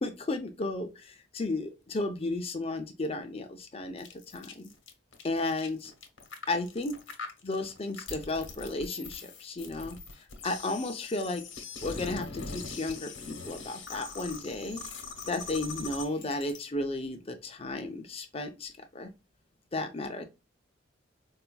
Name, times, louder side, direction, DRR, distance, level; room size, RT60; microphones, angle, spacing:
voice 1, 0.0-4.7 5.2-5.9 6.5-7.0 7.4-10.0 10.4-11.5 11.8-14.8 15.3-19.1 19.7-20.2, left 2 dB, 30° left, 0.5 m, -34 dB
sound 1, 4.0-16.6, left 4 dB, 90° left, 0.9 m, -42 dB
4.4 x 2.4 x 2.2 m
head